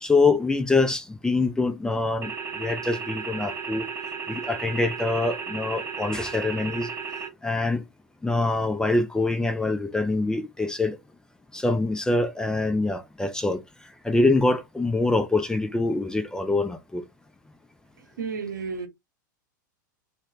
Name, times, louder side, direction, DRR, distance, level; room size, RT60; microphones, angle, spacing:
voice 1, 0.0-3.9 4.3-6.9 7.4-7.8 8.2-11.0 11.5-17.0, left 3 dB, 5° left, 0.3 m, -25 dB
sound 1, 2.2-7.3, right 6 dB, 25° right, 0.6 m, -34 dB
voice 2, 18.2-18.9, right 5 dB, 75° right, 0.7 m, -31 dB
2.2 x 2.0 x 3.8 m
figure-of-eight pair, 95°, 10 cm